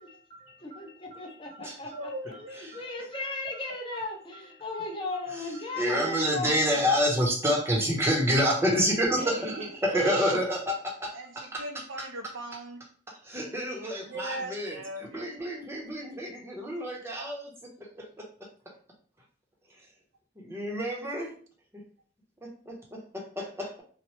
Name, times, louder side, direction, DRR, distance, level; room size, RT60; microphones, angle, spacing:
voice 1, 0.0-2.0 2.7-6.5, left 3 dB, 25° left, 0 dB, 0.5 m, -36 dB
voice 2, 1.6-2.9 6.5-6.9 9.2-9.7 10.0-10.3 11.1-12.8 14.0-15.3, right 1 dB, 80° right, 4 dB, 0.6 m, -39 dB
voice 3, 5.3-10.6 10.8-11.6 13.1-18.5 20.4-21.3 22.4-23.8, equal, 15° right, -1 dB, 0.6 m, -29 dB
2.9 x 2.0 x 3.0 m, 0.43 s
head